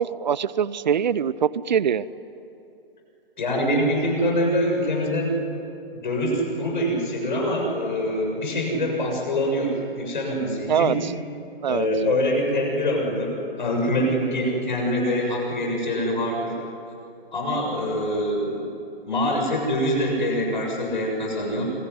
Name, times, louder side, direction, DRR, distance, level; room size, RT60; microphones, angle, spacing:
voice 1, 0.0-2.0 10.7-10.9 11.6-11.9, right 8 dB, 50° right, 19 dB, 0.7 m, -23 dB
voice 2, 3.4-5.4 5.9-11.0 11.7-16.6 17.3-18.7 19.0-21.6, equal, 50° left, 0 dB, 7.1 m, -24 dB
25.5 x 23.5 x 9.7 m, 2.7 s
figure-of-eight pair, 130°, 30 cm